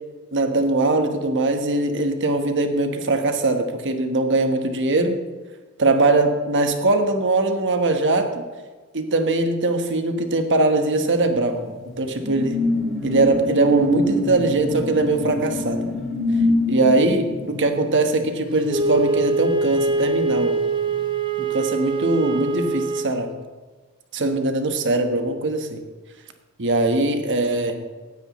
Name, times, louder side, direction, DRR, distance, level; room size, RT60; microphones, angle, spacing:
voice 1, 0.3-5.2 5.8-8.4 8.9-11.6 12.0-12.6 13.0-15.9 16.7-20.5 21.4-23.4 24.1-25.8 26.6-27.8, right 2 dB, 55° right, 6 dB, 1.2 m, -21 dB
sound 1, 11.4-20.3 20.7-20.9, left 1 dB, ahead, 3.2 m, -25 dB
Wind instrument woodwind instrument, 18.7-23.2, right 3 dB, 25° right, 0.6 m, -23 dB
17.0 x 9.6 x 3.1 m, 1.4 s
head